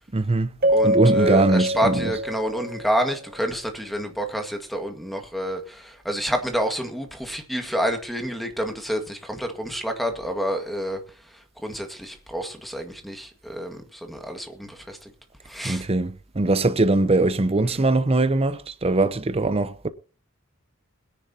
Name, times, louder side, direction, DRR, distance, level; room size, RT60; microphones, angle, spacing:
voice 1, 0.1-0.5 0.8-2.1 15.6-19.9, right 2 dB, 25° right, 0.7 m, -21 dB
Keyboard (musical), 0.6-3.1, equal, 45° right, 1.1 m, -24 dB
voice 2, 0.7-11.0 11.6-15.1 15.5-15.9, equal, ahead, 1.8 m, -28 dB
21.5 x 10.5 x 2.9 m
head